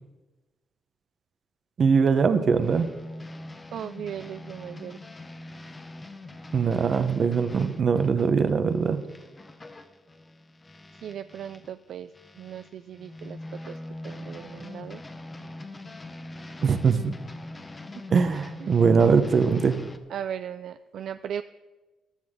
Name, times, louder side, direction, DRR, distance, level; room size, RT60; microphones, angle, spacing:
voice 1, 1.8-2.9 6.5-9.0 16.6-17.2 18.1-19.8, right 5 dB, 50° right, 10 dB, 1.0 m, -22 dB
sound 1, 2.3-11.7 12.1-20.0, left 1 dB, 25° left, 1.1 m, -42 dB
voice 2, 3.7-5.0 11.0-12.1 12.4-13.8 14.0-15.0 18.6-18.8 20.1-21.4, right 9 dB, 70° right, 11 dB, 0.3 m, -37 dB
14.5 x 12.0 x 3.8 m, 1.2 s
cardioid pair, 90°, 0 cm